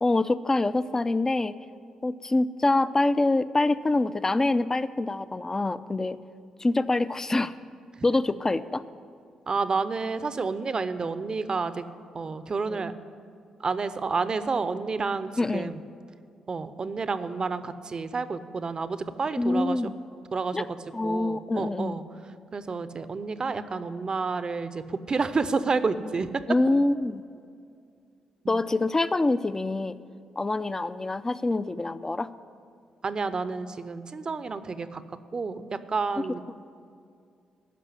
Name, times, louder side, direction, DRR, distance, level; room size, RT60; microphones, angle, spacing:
voice 1, 0.0-1.5 2.0-6.2 6.6-7.5 8.0-8.8 12.7-12.8 15.4-15.7 19.4-19.9 20.5-20.6 20.9-22.0 26.5-27.2 28.5-29.9 30.4-32.3, left 2 dB, 25° left, 14 dB, 0.5 m, -25 dB
voice 2, 9.5-11.9 12.1-12.9 13.6-15.8 16.5-19.8 20.3-20.7 21.0-22.0 22.5-26.4 28.4-28.6 33.0-35.0 35.3-36.4, right 4 dB, 40° right, 12 dB, 0.6 m, -30 dB
13.5 x 5.4 x 9.4 m, 2.3 s
hypercardioid pair, 45°, 2 cm